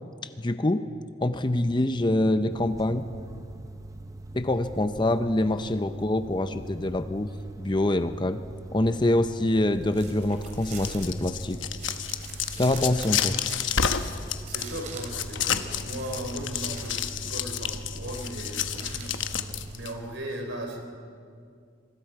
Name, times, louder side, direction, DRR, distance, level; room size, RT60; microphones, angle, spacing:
voice 1, 0.4-0.9 1.2-3.1 4.3-8.4 8.7-11.7 12.6-13.4, left 1 dB, 25° left, 10 dB, 0.6 m, -25 dB
sound 1, 2.5-19.7, right 2 dB, 15° right, 0.8 m, -42 dB
sound 2, 9.7-19.9, right 3 dB, 40° right, 2.7 m, -44 dB
sound 3, 10.5-19.9, left 8 dB, 75° left, 1.0 m, -30 dB
voice 2, 14.5-19.2 19.7-20.8, right 1 dB, 70° right, 2 dB, 4.1 m, -37 dB
26.0 x 24.0 x 4.8 m, 2.2 s
head